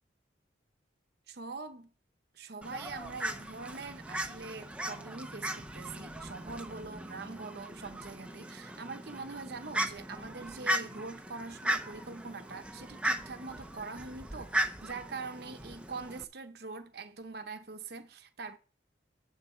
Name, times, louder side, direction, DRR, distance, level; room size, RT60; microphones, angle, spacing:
voice 1, 1.3-1.9 2.3-18.6, right 4 dB, 55° right, 0.8 m, -43 dB
Fowl, 2.6-16.2, right 1 dB, 5° right, 0.6 m, -37 dB
10.5 x 4.0 x 6.2 m
head